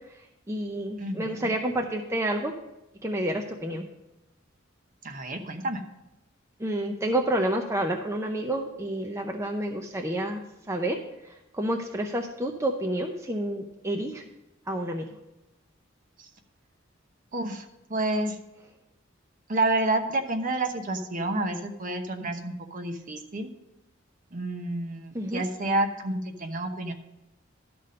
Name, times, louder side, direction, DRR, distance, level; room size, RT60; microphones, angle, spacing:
voice 1, 0.5-2.5 3.0-3.8 6.6-10.4 10.7-11.0 11.5-14.2 14.7-15.0 25.1-25.4, right 1 dB, 15° right, 3 dB, 0.6 m, -29 dB
voice 2, 1.0-1.5 5.0-5.8 16.2-16.3 17.3-17.6 17.9-18.4 19.5-23.5 24.3-26.9, right 2 dB, 40° right, 5 dB, 1.0 m, -29 dB
12.5 x 4.2 x 6.4 m, 0.94 s
head